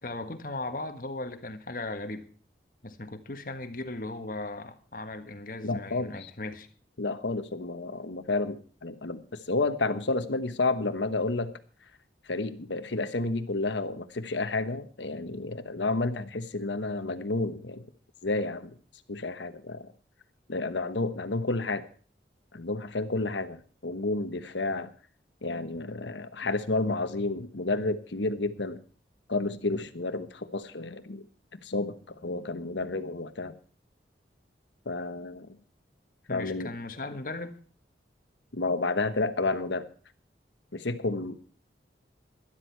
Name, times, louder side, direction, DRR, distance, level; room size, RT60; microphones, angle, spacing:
voice 1, 0.0-2.2 2.8-6.7 36.3-37.6, left 2 dB, 50° left, 8 dB, 1.5 m, -37 dB
voice 2, 5.6-6.3 7.0-11.5 12.3-17.8 18.2-18.7 19.1-19.9 20.5-21.9 22.5-24.9 25.4-28.8 29.3-31.2 31.6-33.6 34.8-35.5 36.3-36.7 38.5-39.9 40.7-41.4, left 3 dB, 80° left, 11 dB, 1.2 m, -30 dB
12.5 x 12.0 x 4.6 m, 0.42 s
head